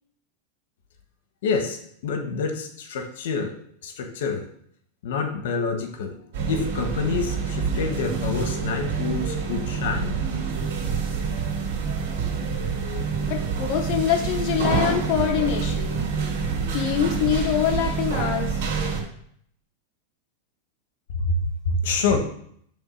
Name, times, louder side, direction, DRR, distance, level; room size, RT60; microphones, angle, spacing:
voice 1, 1.4-3.6 3.8-4.5 5.0-6.2 6.5-10.2 21.2-22.2, left 4 dB, 75° left, 5 dB, 1.1 m, -27 dB
sound 1, 6.3-19.0, right 5 dB, 70° right, 2.6 m, -27 dB
voice 2, 13.3-16.0 16.7-18.6, left 10 dB, 40° left, 3 dB, 0.9 m, -24 dB
7.2 x 3.2 x 6.1 m, 0.65 s
supercardioid pair, 165°, 0 cm